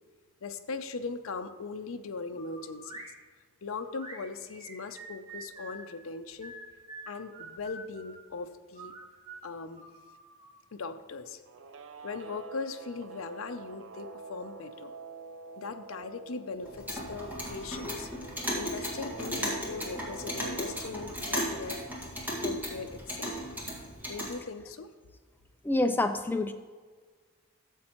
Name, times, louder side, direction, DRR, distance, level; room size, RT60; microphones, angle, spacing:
voice 1, 0.4-3.1 3.6-6.5 7.1-8.9 9.4-9.8 10.7-11.4 12.0-15.0 15.6-18.1 18.6-21.8 22.4-23.4 24.1-24.9, left 4 dB, 70° left, 7 dB, 0.6 m, -39 dB
sound 1, 2.3-3.1 3.8-5.9 6.4-8.2 8.7-10.6, right 2 dB, 25° right, 1.5 m, -47 dB
Guitar, 11.4-20.9, right 4 dB, 60° right, 0.5 m, -47 dB
Clock, 16.6-24.4, equal, 10° right, 1.7 m, -36 dB
voice 2, 25.6-26.5, left 2 dB, 10° left, 8 dB, 0.3 m, -27 dB
13.0 x 7.4 x 3.0 m, 1.5 s
head